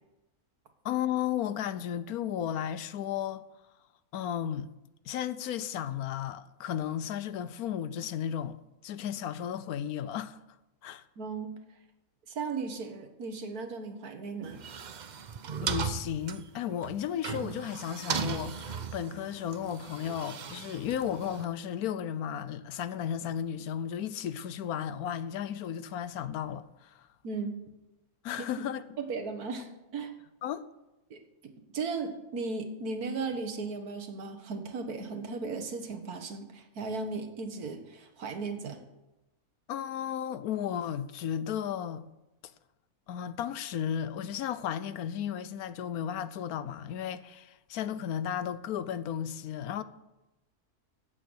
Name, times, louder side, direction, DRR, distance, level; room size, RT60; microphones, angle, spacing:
voice 1, 0.8-3.4 4.1-4.7 5.0-8.6 8.8-10.4 10.8-11.0 15.6-27.1 28.2-28.8 30.4-30.7 39.7-42.0 43.1-49.8, left 9 dB, 75° left, 1.1 m, -34 dB
voice 2, 11.2-11.5 12.3-14.6 27.2-27.6 28.6-28.7 29.0-30.1 31.1-38.8, right 4 dB, 75° right, 1.8 m, -36 dB
sound 1, 14.4-21.5, right 6 dB, 60° right, 0.4 m, -37 dB
16.0 x 7.8 x 6.3 m
omnidirectional pair, 1.6 m